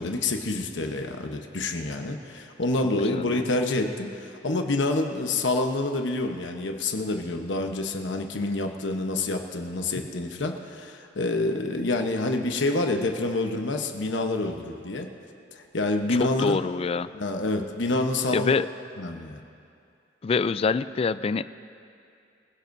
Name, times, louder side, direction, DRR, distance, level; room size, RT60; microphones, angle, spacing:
voice 1, 0.0-15.1 15.5-16.6 17.1-18.5 19.0-19.4, left 2 dB, 90° left, 4 dB, 1.0 m, -27 dB
voice 2, 3.0-3.4 16.1-17.1 18.3-18.7 20.2-21.4, left 4 dB, 35° left, 15 dB, 0.3 m, -25 dB
24.5 x 16.0 x 2.7 m, 2.5 s
head